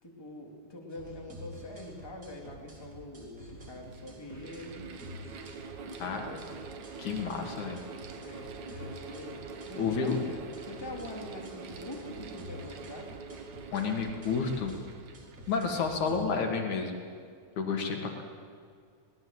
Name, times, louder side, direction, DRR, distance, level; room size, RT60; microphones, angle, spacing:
voice 1, 0.0-4.9 5.8-6.4 8.2-13.2 15.7-15.9, left 1 dB, 10° left, -1 dB, 2.9 m, -44 dB
sound 1, 0.9-16.3, equal, 25° right, 4.7 m, -49 dB
Mechanical fan, 2.6-2.7 3.5-16.2, right 5 dB, 65° right, 2.7 m, -45 dB
voice 2, 7.0-7.8 9.8-10.2 13.7-14.7 15.5-17.0 17.6-18.2, left 5 dB, 70° left, 3 dB, 3.1 m, -30 dB
23.5 x 18.5 x 7.9 m, 2.1 s
omnidirectional pair, 3.6 m